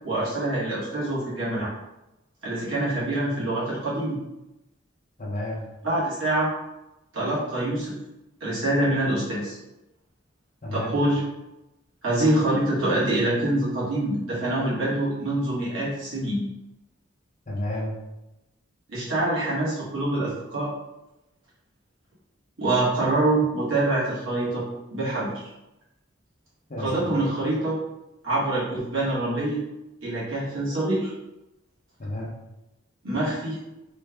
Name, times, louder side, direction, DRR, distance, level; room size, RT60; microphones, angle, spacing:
voice 1, 0.0-1.7 2.4-4.2 5.8-6.5 7.1-8.0 8.4-9.6 10.7-11.2 12.0-16.4 18.9-20.7 22.6-24.6 24.9-25.5 26.8-27.8 28.2-29.6 30.0-31.1 33.0-33.6, right 1 dB, 70° right, -8 dB, 1.4 m, -25 dB
voice 2, 5.2-5.6 10.6-10.9 17.5-17.9 26.7-27.2 32.0-32.3, left 1 dB, 35° left, -3 dB, 0.7 m, -31 dB
3.2 x 2.3 x 3.4 m, 0.95 s
head